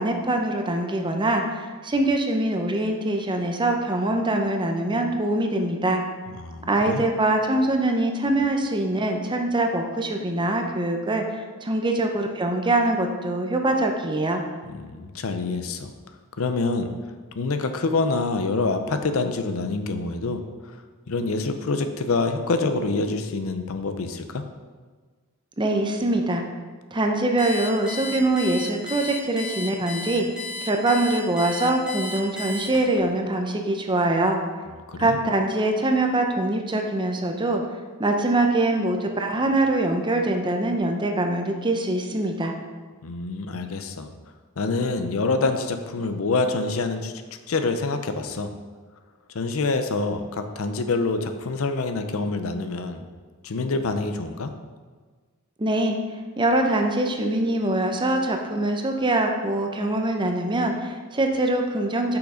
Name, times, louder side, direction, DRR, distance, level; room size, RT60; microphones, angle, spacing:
voice 1, 0.0-6.0 6.7-14.4 25.6-26.4 26.9-30.3 30.6-34.4 35.0-37.6 38.0-42.5 55.6-56.0 56.4-62.2, right 2 dB, 20° right, 4 dB, 0.7 m, -23 dB
voice 2, 6.4-7.0 14.7-15.9 16.4-16.9 17.4-20.8 21.1-24.5 34.7-35.2 43.0-44.1 44.6-47.1 47.5-48.5 49.3-53.0 53.4-54.5, left 3 dB, 65° left, 8 dB, 0.6 m, -26 dB
Alarm, 27.4-33.0, left 3 dB, 5° right, 2.1 m, -34 dB
6.3 x 5.9 x 5.1 m, 1.4 s
head